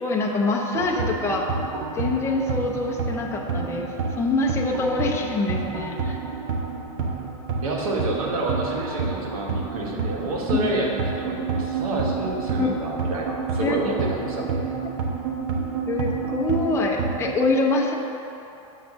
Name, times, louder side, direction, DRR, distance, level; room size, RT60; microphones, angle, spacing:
voice 1, 0.0-1.5 1.9-6.2 10.5-10.7 12.6-12.7 13.6-13.8 15.9-17.9, left 3 dB, 15° left, -1 dB, 0.6 m, -25 dB
sound 1, 0.7-17.4, right 5 dB, 55° right, 1.0 m, -29 dB
voice 2, 7.6-14.7, right 2 dB, 80° right, -1 dB, 1.4 m, -28 dB
7.2 x 3.6 x 6.1 m, 2.9 s
supercardioid pair, 125°, 18 cm